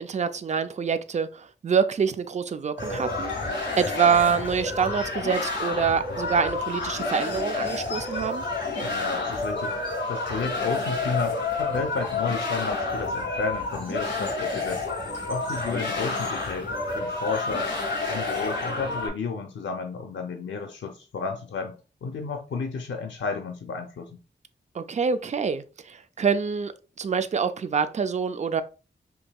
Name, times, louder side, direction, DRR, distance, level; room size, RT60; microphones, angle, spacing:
voice 1, 0.0-3.3 3.8-8.4 24.7-26.7 27.0-28.6, right 6 dB, 40° right, 0.4 m, -26 dB
sound 1, 2.8-19.1, left 3 dB, 65° left, 1.8 m, -29 dB
voice 2, 8.8-14.9 15.3-17.7 18.1-24.2, left 4 dB, 85° left, 0.6 m, -32 dB
5.3 x 2.9 x 2.2 m
wide cardioid pair, 90°, 19 cm